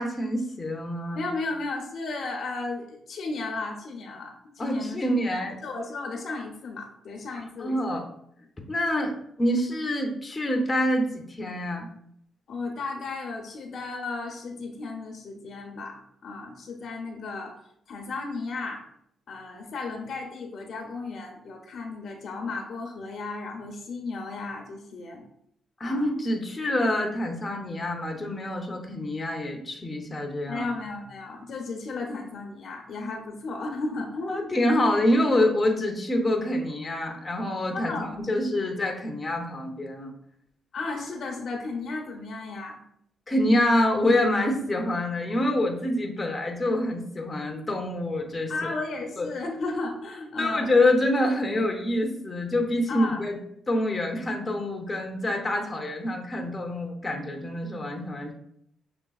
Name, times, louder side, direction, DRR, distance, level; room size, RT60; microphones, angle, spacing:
voice 1, 0.0-1.2 4.6-5.6 7.6-8.0 8.7-11.9 25.8-30.6 34.3-40.1 43.3-48.5 49.2-49.3 50.4-53.4 53.7-58.3, left 1 dB, 20° left, 1 dB, 0.7 m, -26 dB
voice 2, 1.2-5.0 5.6-8.0 12.5-17.6 17.9-18.8 19.3-25.2 25.8-26.0 30.5-34.5 37.7-38.2 40.7-42.8 48.5-50.7 52.9-53.2, left 3 dB, 60° left, 2 dB, 0.7 m, -34 dB
6.0 x 3.2 x 2.3 m, 0.73 s
cardioid pair, 100°, 0 cm